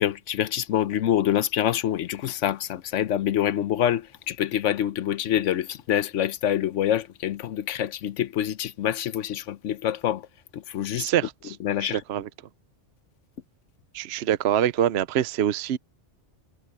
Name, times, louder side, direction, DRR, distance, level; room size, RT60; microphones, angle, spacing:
voice 1, 0.0-10.3 10.5-11.1 11.6-12.0, left 11 dB, 90° left, 1.0 m, -26 dB
voice 2, 11.0-12.3 13.9-15.8, right 10 dB, 65° right, 0.9 m, -25 dB
omnidirectional pair, 1.2 m